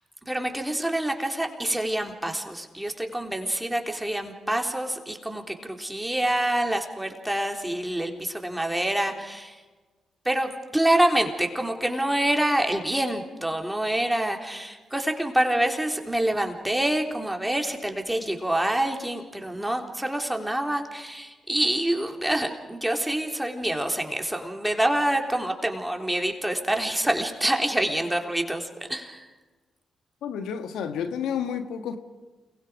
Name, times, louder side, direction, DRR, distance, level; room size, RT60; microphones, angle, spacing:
voice 1, 0.3-9.6 10.3-29.3, right 1 dB, 10° right, 3.7 m, -26 dB
voice 2, 30.2-32.0, left 8 dB, 75° left, 1.5 m, -30 dB
29.0 x 21.0 x 5.2 m
hypercardioid pair, 40°, 0 cm